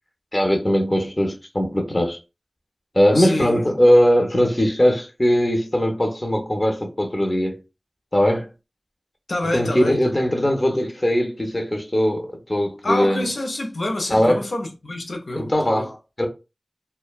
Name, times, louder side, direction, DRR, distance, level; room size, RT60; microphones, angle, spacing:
voice 1, 0.3-2.2 2.9-7.6 8.1-8.5 9.5-13.3 14.1-14.4 15.4-16.3, equal, 30° left, 0.6 m, -20 dB
voice 2, 3.1-3.7 9.3-10.0 12.8-15.9, left 1 dB, 85° left, 0.5 m, -27 dB
2.5 x 2.1 x 2.2 m
wide cardioid pair, 55°, 0 cm